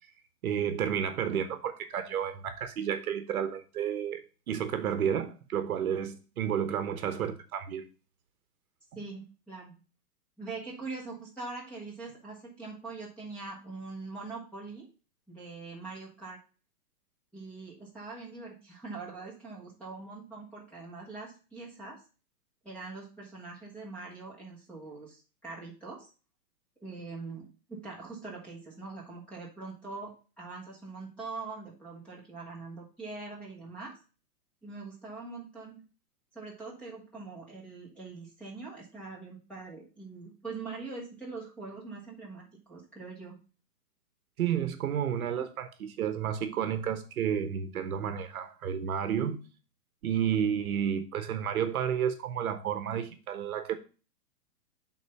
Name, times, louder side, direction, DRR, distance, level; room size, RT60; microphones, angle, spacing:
voice 1, 0.4-7.9 44.4-49.4 50.0-53.8, right 8 dB, 65° right, 1.1 m, -31 dB
voice 2, 8.9-9.8 10.4-14.9 15.3-16.4 17.3-22.0 22.6-26.1 26.8-34.0 34.6-35.8 36.3-43.4, right 3 dB, ahead, 1.5 m, -43 dB
6.4 x 4.0 x 5.5 m
hypercardioid pair, 170°, 47 cm